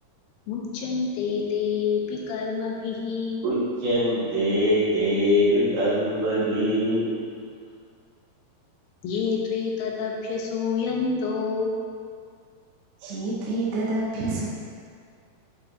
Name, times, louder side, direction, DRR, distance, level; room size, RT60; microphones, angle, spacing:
voice 1, 0.5-3.5 9.0-11.8, left 5 dB, 75° left, -1 dB, 2.4 m, -27 dB
voice 2, 3.4-7.0, equal, 60° right, -10 dB, 2.6 m, -22 dB
voice 3, 13.0-14.5, right 2 dB, 90° right, -6 dB, 2.8 m, -28 dB
7.8 x 5.2 x 2.7 m, 2.1 s
omnidirectional pair, 4.5 m